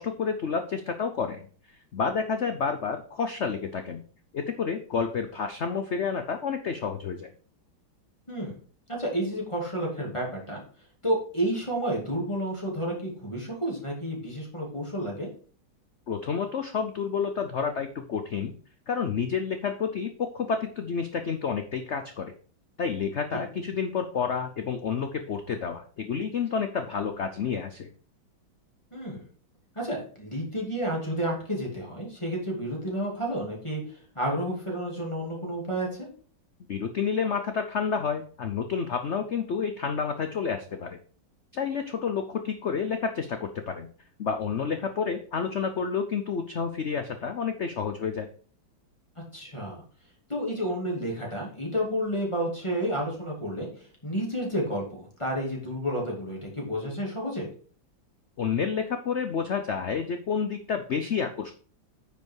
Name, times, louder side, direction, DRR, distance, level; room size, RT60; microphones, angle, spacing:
voice 1, 0.0-1.5 1.9-4.0 4.3-7.3 16.1-18.5 18.9-22.3 22.8-27.9 36.7-41.0 41.5-43.9 44.2-48.3 58.4-61.5, left 6 dB, 90° left, 7 dB, 0.6 m, -29 dB
voice 2, 8.3-8.6 8.9-10.6 11.0-15.3 23.3-23.4 28.9-29.3 29.7-33.8 34.1-36.1 49.3-49.8 50.3-53.7 54.0-57.5, equal, 15° left, -2 dB, 2.6 m, -30 dB
9.6 x 5.2 x 4.7 m, 0.43 s
omnidirectional pair, 2.2 m